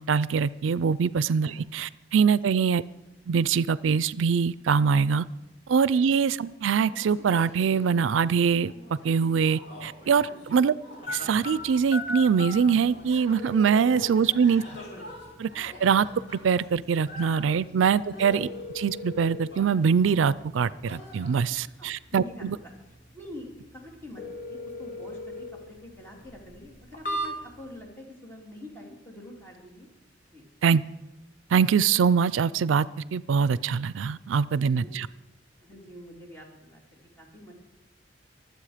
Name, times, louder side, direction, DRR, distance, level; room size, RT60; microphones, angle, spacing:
voice 1, 0.0-2.8 3.3-5.2 5.7-8.7 9.0-10.8 11.1-14.6 15.4-16.1 16.3-18.5 18.7-22.6 30.6-30.8 31.5-32.9 33.1-35.1, right 6 dB, 85° right, 19 dB, 0.4 m, -23 dB
sound 1, 6.8-20.2 20.5-21.5, left 1 dB, 70° left, 6.5 m, -47 dB
sound 2, 11.1-27.8, left 1 dB, 45° left, 2.2 m, -40 dB
voice 2, 21.7-22.5 23.1-24.2 24.5-29.9 30.3-30.4 34.5-35.0 35.6-37.5, left 1 dB, 10° left, -1 dB, 2.8 m, -46 dB
23.5 x 8.0 x 5.0 m, 0.94 s
head